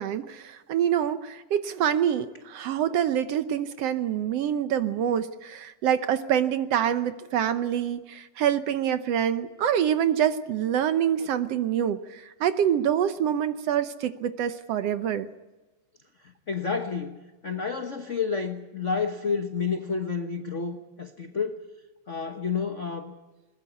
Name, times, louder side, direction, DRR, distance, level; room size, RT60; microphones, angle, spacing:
voice 1, 0.0-15.3, right 9 dB, 70° right, 11 dB, 1.7 m, -26 dB
voice 2, 16.5-17.2 17.4-21.7 22.1-23.1, left 5 dB, 60° left, 6 dB, 0.7 m, -30 dB
21.0 x 20.5 x 8.2 m, 1.1 s
omnidirectional pair, 3.3 m